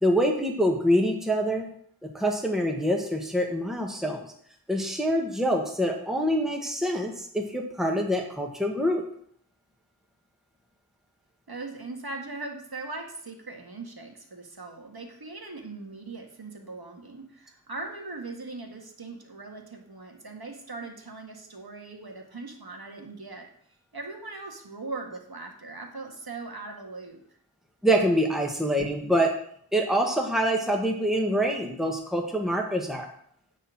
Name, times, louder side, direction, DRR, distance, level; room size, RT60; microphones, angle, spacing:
voice 1, 0.0-1.7 2.0-4.3 4.7-9.0 27.8-29.3 29.7-33.1, equal, ahead, 1 dB, 1.7 m, -25 dB
voice 2, 11.5-23.5 23.9-27.2, right 3 dB, 75° right, 2 dB, 1.8 m, -40 dB
9.9 x 4.5 x 7.7 m, 0.64 s
wide cardioid pair, 45°, 38 cm